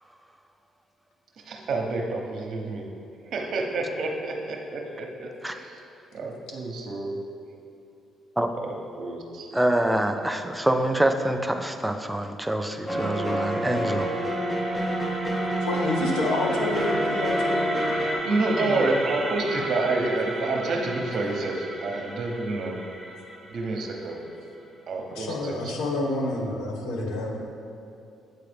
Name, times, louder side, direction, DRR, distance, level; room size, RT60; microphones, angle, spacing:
voice 1, 1.5-2.9 3.3-5.8 6.1-7.2 8.5-9.5 18.2-22.8 23.5-24.2 24.9-25.7, right 2 dB, 65° right, 1 dB, 0.8 m, -29 dB
voice 2, 9.5-14.1, right 1 dB, 10° right, 7 dB, 0.4 m, -25 dB
sound 1, 12.6-24.6, right 1 dB, 35° right, 1.0 m, -36 dB
sound 2, 12.9-18.2, right 1 dB, 15° left, 0.8 m, -28 dB
voice 3, 15.6-17.8 18.6-19.0 25.1-27.4, left 2 dB, 85° left, 0 dB, 0.8 m, -28 dB
7.9 x 3.7 x 3.4 m, 2.7 s
supercardioid pair, 75°, 0 cm